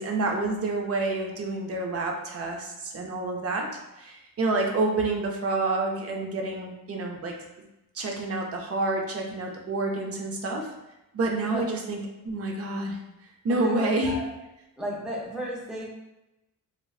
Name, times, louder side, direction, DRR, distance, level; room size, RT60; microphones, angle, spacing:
voice 1, 0.0-3.7 4.0-7.4 7.9-10.7 11.1-13.0 13.4-14.2, right 2 dB, 45° right, 1 dB, 0.5 m, -28 dB
voice 2, 13.5-14.3 14.8-15.9, right 1 dB, ahead, -5 dB, 0.6 m, -33 dB
3.8 x 2.1 x 2.3 m, 0.93 s
wide cardioid pair, 155°, 34 cm